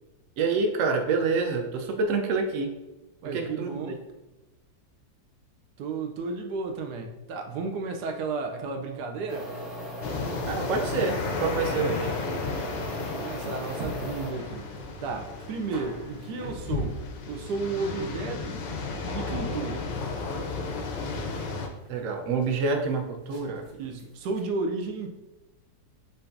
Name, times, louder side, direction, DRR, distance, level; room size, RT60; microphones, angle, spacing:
voice 1, 0.4-2.7 3.3-4.0 10.5-12.1 21.9-23.7, right 4 dB, 90° right, 3 dB, 0.7 m, -27 dB
voice 2, 3.2-4.0 5.8-9.5 13.0-14.7 15.0-17.0 17.3-18.6 19.1-19.9 23.8-25.1, right 4 dB, 70° right, 3 dB, 1.0 m, -33 dB
sound 1, 9.3-14.3, equal, 20° right, 1.5 m, -38 dB
sound 2, 10.0-21.7, left 3 dB, 85° left, 1.5 m, -33 dB
sound 3, 13.6-24.4, right 2 dB, 40° right, 1.0 m, -43 dB
7.6 x 2.7 x 2.6 m, 1.0 s
omnidirectional pair, 2.1 m